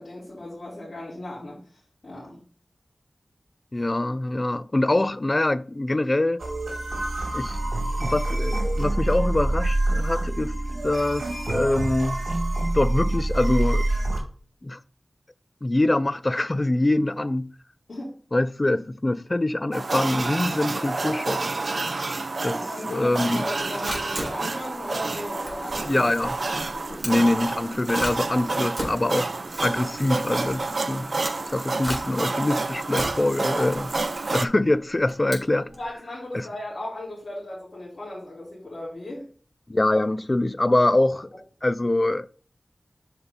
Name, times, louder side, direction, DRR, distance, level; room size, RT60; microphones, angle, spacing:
voice 1, 0.0-1.6 2.0-2.4 17.9-18.1 22.5-26.1 26.7-27.0 29.2-29.4 35.6-39.3, left 1 dB, 70° left, 3.9 m, -36 dB
voice 2, 3.7-6.4 7.3-7.6 8.0-10.6 10.8-12.2 12.7-13.9 14.6-14.8 15.6-17.5 18.3-21.4 22.4-22.6 22.9-23.4 25.8-26.4 27.0-29.3 29.6-31.1 31.5-33.9 34.3-35.7 36.3-36.4 39.7-41.3 41.6-42.3, left 2 dB, 35° left, 0.5 m, -24 dB
sound 1, 6.4-14.2, right 2 dB, 85° right, 1.6 m, -26 dB
sound 2, 19.7-34.5, right 3 dB, 65° right, 0.5 m, -29 dB
Camera, 23.8-35.9, equal, 20° right, 3.7 m, -37 dB
7.1 x 5.3 x 4.0 m
wide cardioid pair, 50°, 0 cm